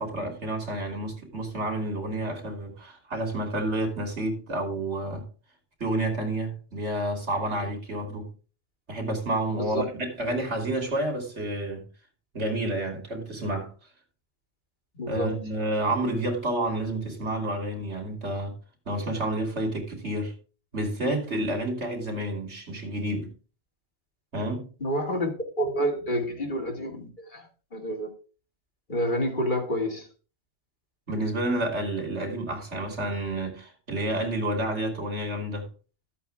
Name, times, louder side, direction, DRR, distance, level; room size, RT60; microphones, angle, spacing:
voice 1, 0.0-5.3 5.8-8.3 8.9-11.9 12.3-13.7 15.1-18.6 18.9-20.3 20.7-23.3 24.3-24.7 31.1-35.7, right 1 dB, 85° right, 3.3 m, -29 dB
voice 2, 15.0-15.3 24.8-25.3 25.6-27.5 27.7-28.1 28.9-30.1, equal, 45° left, 2.5 m, -28 dB
13.5 x 8.4 x 3.5 m
omnidirectional pair, 1.1 m